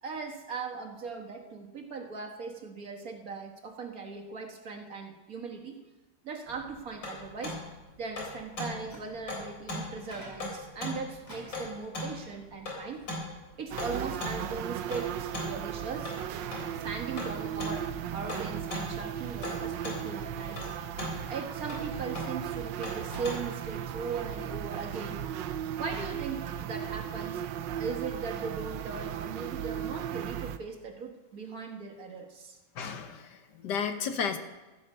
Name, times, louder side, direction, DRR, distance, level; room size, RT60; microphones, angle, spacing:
voice 1, 0.0-5.8 6.2-7.6 8.0-13.0 13.6-16.2 16.6-20.7 21.3-25.3 25.8-27.4 27.7-32.6, right 5 dB, 55° right, 3 dB, 1.8 m, -39 dB
sound 1, 6.5-23.4, left 2 dB, 85° left, 4.5 m, -39 dB
Microwave oven, 8.7-24.0, left 1 dB, 10° left, 4.0 m, -55 dB
sound 2, 13.7-30.6, right 10 dB, 80° right, 1.4 m, -36 dB
voice 2, 32.7-34.4, left 6 dB, 70° left, 7 dB, 1.6 m, -33 dB
14.0 x 13.0 x 5.4 m, 1.2 s
omnidirectional pair, 2.0 m